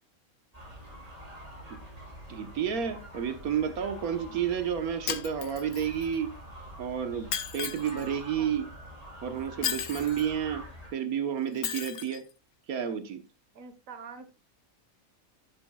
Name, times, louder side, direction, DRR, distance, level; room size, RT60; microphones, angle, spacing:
sound 1, 0.5-10.9, right 1 dB, 25° right, 4.4 m, -46 dB
voice 1, 2.3-6.3 6.8-8.7 9.2-10.6 10.9-12.2 12.7-13.2, right 8 dB, 90° right, 9 dB, 1.5 m, -31 dB
Shatter, 5.1-6.1 7.3-8.0 9.6-10.3 11.6-12.2, left 10 dB, 85° left, 1.3 m, -34 dB
voice 2, 8.1-8.6 13.5-14.3, right 5 dB, 65° right, 11 dB, 1.6 m, -46 dB
11.5 x 10.5 x 2.3 m, 0.26 s
omnidirectional pair, 1.5 m